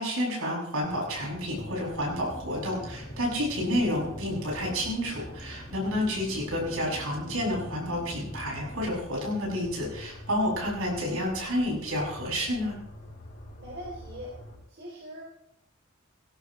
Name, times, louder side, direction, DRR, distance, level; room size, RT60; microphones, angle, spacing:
voice 1, 0.0-12.7, equal, 70° right, -3 dB, 7.5 m, -30 dB
sound 1, 0.8-14.6, equal, 35° left, 6.4 m, -46 dB
sound 2, 2.0-9.0, equal, 10° left, 1.3 m, -44 dB
voice 2, 13.6-14.4 14.7-15.2, equal, 45° right, -4 dB, 3.6 m, -41 dB
19.0 x 16.5 x 3.3 m, 0.80 s
head